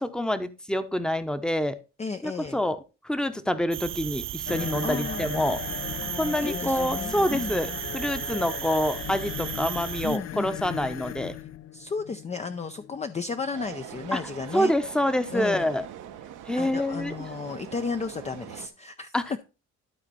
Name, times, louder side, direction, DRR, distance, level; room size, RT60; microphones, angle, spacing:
voice 1, 0.0-1.8 2.2-2.8 3.0-5.6 6.2-11.3 14.1-14.2 14.5-15.8 16.5-17.1 19.1-19.4, left 1 dB, 5° left, 11 dB, 0.8 m, -27 dB
voice 2, 2.0-2.6 4.8-5.3 6.4-7.6 10.0-10.6 11.7-14.7 15.3-15.7 16.6-19.4, left 4 dB, 25° left, 8 dB, 0.5 m, -33 dB
sound 1, 3.7-10.2, right 11 dB, 45° right, 0.4 m, -35 dB
sound 2, 4.5-14.1, left 11 dB, 60° left, 0.6 m, -37 dB
sound 3, 13.5-18.7, right 10 dB, 85° right, 1.1 m, -42 dB
12.0 x 4.3 x 4.2 m, 0.31 s
cardioid pair, 90°, 30 cm